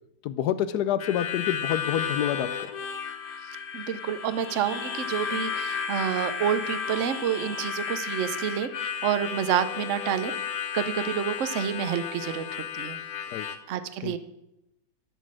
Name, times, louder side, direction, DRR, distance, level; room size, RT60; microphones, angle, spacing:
voice 1, 0.2-2.7 13.3-13.5 14.0-14.1, left 10 dB, 75° left, 13 dB, 0.9 m, -28 dB
Harmonica, 1.0-13.6, left 7 dB, 55° left, 1.2 m, -33 dB
voice 2, 3.7-10.4 10.7-12.4 12.7-13.0 13.7-14.2, right 9 dB, 65° right, 11 dB, 0.7 m, -28 dB
12.5 x 6.3 x 7.6 m, 0.88 s
omnidirectional pair, 2.3 m